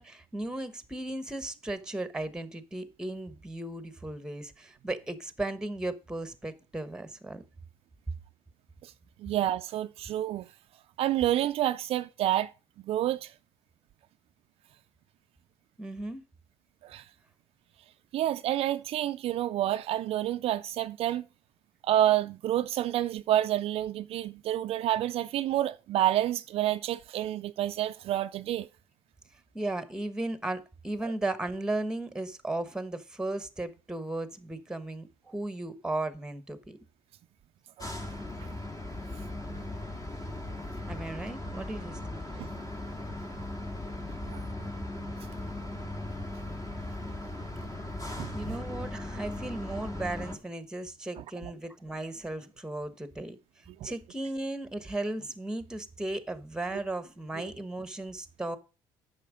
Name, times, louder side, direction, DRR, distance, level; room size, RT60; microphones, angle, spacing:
voice 1, 0.0-7.4 15.8-16.2 29.5-36.8 40.9-42.5 48.3-53.4 53.8-58.6, right 2 dB, 5° right, 1.2 m, -36 dB
voice 2, 9.2-10.5 11.0-12.5 12.9-13.3 16.8-17.1 18.1-21.2 21.8-28.7 31.0-31.1 37.8-37.9 42.4-42.5 44.3-44.4 48.2-48.3 53.8-53.9, right 12 dB, 60° right, 0.4 m, -28 dB
sound 1, 37.8-50.4, left 1 dB, 35° left, 2.1 m, -38 dB
8.5 x 6.3 x 5.0 m
supercardioid pair, 80°, 11 cm